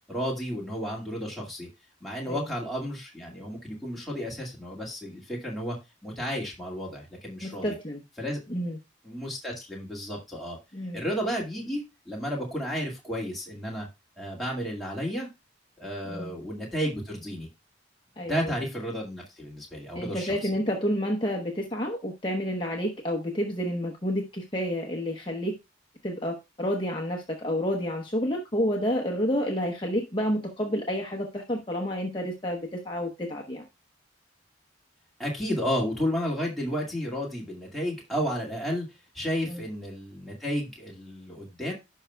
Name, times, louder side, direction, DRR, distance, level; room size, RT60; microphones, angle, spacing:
voice 1, 0.1-1.7 2.0-5.8 6.0-7.7 8.2-8.4 9.0-10.6 10.9-13.9 14.2-15.3 15.8-17.5 18.2-20.4 35.2-38.9 39.1-41.7, equal, ahead, -3 dB, 2.1 m, -32 dB
voice 2, 7.4-8.0 8.5-8.8 10.7-11.0 16.0-16.3 18.2-18.5 19.9-25.5 26.0-33.6 39.4-39.6, equal, 25° left, -1 dB, 1.0 m, -29 dB
15.5 x 5.7 x 2.3 m, 0.23 s
head